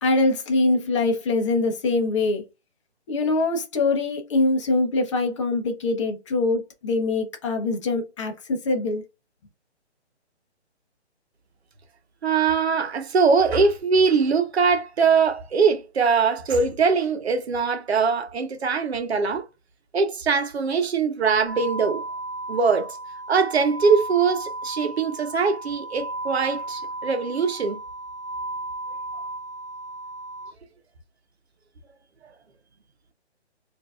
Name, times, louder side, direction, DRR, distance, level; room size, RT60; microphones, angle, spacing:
voice 1, 0.0-2.4 3.1-9.0, left 3 dB, 25° left, 0.8 m, -23 dB
voice 2, 12.2-19.4 19.9-22.0 22.5-23.0 23.3-27.8, right 5 dB, 65° right, 1.0 m, -22 dB
sound 1, 21.5-30.5, right 2 dB, 20° right, 1.6 m, -34 dB
4.4 x 2.7 x 2.4 m
hypercardioid pair, 150°, 34 cm